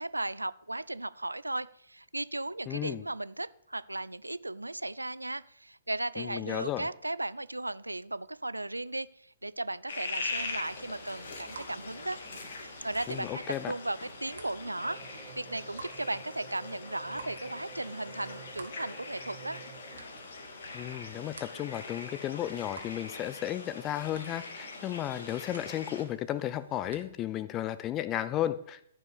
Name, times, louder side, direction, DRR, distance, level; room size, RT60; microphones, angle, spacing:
voice 1, 0.0-9.1 9.4-12.2 12.6-19.6, right 2 dB, 85° right, 17 dB, 0.4 m, -36 dB
voice 2, 2.7-3.0 6.2-6.9 13.1-13.7 20.7-28.8, left 12 dB, 25° left, 14 dB, 0.7 m, -34 dB
sound 1, 9.9-26.0, left 3 dB, 55° left, 2.2 m, -42 dB
sound 2, 10.2-27.1, right 4 dB, 65° right, 1.7 m, -53 dB
sound 3, 14.8-20.3, right 6 dB, 25° right, 1.5 m, -52 dB
14.5 x 5.5 x 6.9 m, 0.72 s
figure-of-eight pair, 120°, 0 cm